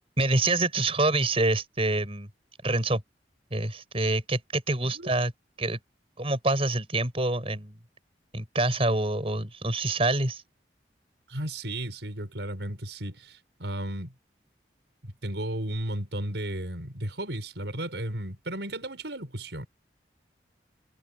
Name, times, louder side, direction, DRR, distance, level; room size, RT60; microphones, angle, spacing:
voice 1, 0.2-2.3 2.6-3.0 3.5-5.3 5.6-5.8 6.2-7.8 8.3-10.4, right 2 dB, 35° right, 5.3 m, -26 dB
voice 2, 11.3-14.1 15.0-19.7, right 1 dB, 85° right, 5.9 m, -34 dB
head